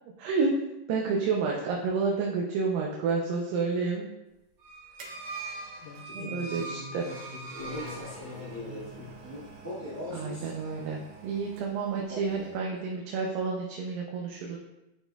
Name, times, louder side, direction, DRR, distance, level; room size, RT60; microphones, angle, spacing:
voice 1, 0.2-0.6 0.9-4.1 6.2-7.1 10.1-14.6, right 4 dB, 85° right, -1 dB, 2.4 m, -30 dB
sound 1, 4.4-6.2 7.3-12.0 12.3-12.4, right 6 dB, 70° right, 2.1 m, -51 dB
sound 2, 4.6-8.7, right 3 dB, 50° right, 2.7 m, -41 dB
voice 2, 5.8-9.2, left 4 dB, 80° left, 0 dB, 2.0 m, -44 dB
Male speech man speaking, 7.5-10.6 11.9-12.6, left 1 dB, 10° left, 0.8 m, -41 dB
9.8 x 4.4 x 2.3 m, 0.97 s
omnidirectional pair, 3.9 m